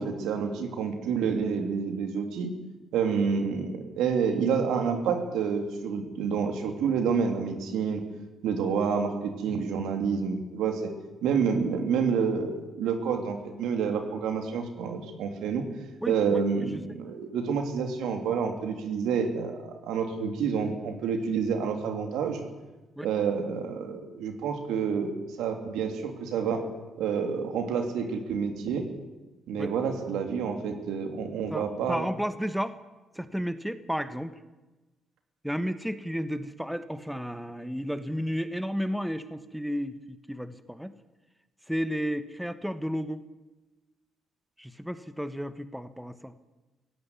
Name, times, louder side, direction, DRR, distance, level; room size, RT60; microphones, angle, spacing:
voice 1, 0.0-2.5 2.9-8.0 8.4-10.9 11.2-15.6 16.1-22.4 23.0-26.7 27.0-28.8 29.5-32.1, right 6 dB, 85° right, 5 dB, 3.1 m, -28 dB
voice 2, 16.0-16.8 23.0-23.1 29.6-29.7 31.5-32.8 33.1-34.3 35.4-40.9 41.7-43.2 44.6-46.3, equal, ahead, 11 dB, 1.2 m, -33 dB
16.5 x 16.0 x 9.8 m, 1.1 s
cardioid pair, 90°, 0 cm